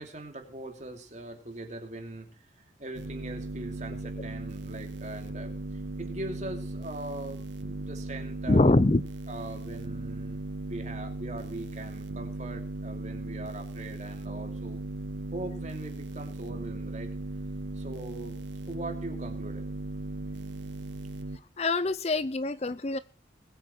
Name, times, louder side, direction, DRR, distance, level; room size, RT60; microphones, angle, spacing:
voice 1, 0.0-8.8 9.3-14.8 15.3-17.1 17.7-18.4 18.7-19.6, right 1 dB, 40° right, 4 dB, 2.8 m, -41 dB
sound 1, 2.9-21.4, right 2 dB, 70° right, 0.7 m, -37 dB
voice 2, 8.5-9.0 21.6-23.0, left 2 dB, 35° left, 15 dB, 0.6 m, -24 dB
20.5 x 8.7 x 4.4 m, 0.34 s
head